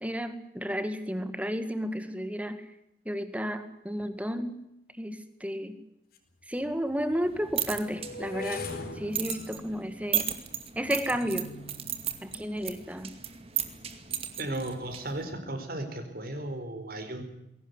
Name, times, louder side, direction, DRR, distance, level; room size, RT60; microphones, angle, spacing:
voice 1, 0.0-2.6 3.1-4.6 5.0-5.8 6.5-8.7 9.0-10.3 10.8-11.5 12.2-13.1, equal, 5° right, 10 dB, 1.9 m, -32 dB
sound 1, 6.1-6.2 7.0-13.1 13.8-14.2 14.4-14.8, left 3 dB, 50° left, 4.2 m, -42 dB
sound 2, 7.3-15.3, right 10 dB, 30° right, 2.3 m, -36 dB
voice 2, 14.4-17.2, right 1 dB, 50° right, 6 dB, 4.5 m, -35 dB
21.5 x 18.0 x 9.8 m, 0.81 s
head